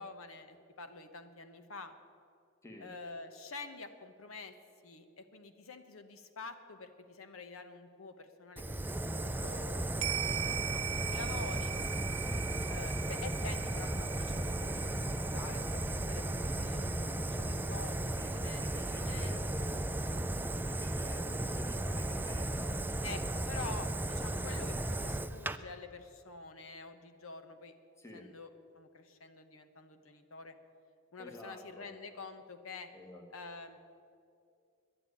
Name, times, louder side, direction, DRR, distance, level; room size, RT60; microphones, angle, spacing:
voice 1, 0.0-1.9 2.8-4.5 4.8-10.0 10.7-11.8 12.7-18.6 18.9-19.6 23.0-27.7 28.1-30.6 31.1-32.9 33.3-33.8, left 4 dB, 80° left, 8 dB, 1.0 m, -47 dB
Fire, 8.6-25.6, right 1 dB, 10° right, 0.4 m, -35 dB
sound 1, 10.0-18.6 18.9-19.0, right 11 dB, 80° right, 0.4 m, -41 dB
voice 2, 10.2-11.1 12.3-12.5 18.2-19.9 20.2-23.4 28.0-28.3 31.2-31.9 32.9-33.2, left 1 dB, 15° left, 2 dB, 1.4 m, -50 dB
11.0 x 9.0 x 9.7 m, 2.4 s
head